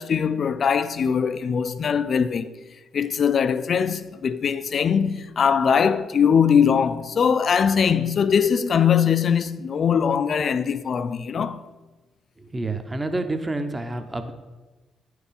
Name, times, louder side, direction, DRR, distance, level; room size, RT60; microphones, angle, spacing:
voice 1, 0.0-2.5 2.9-11.7, left 7 dB, 50° left, 0.4 m, -21 dB
voice 2, 12.4-14.3, right 2 dB, 20° right, 0.8 m, -28 dB
9.2 x 4.8 x 5.2 m
cardioid pair, 90°, 0 cm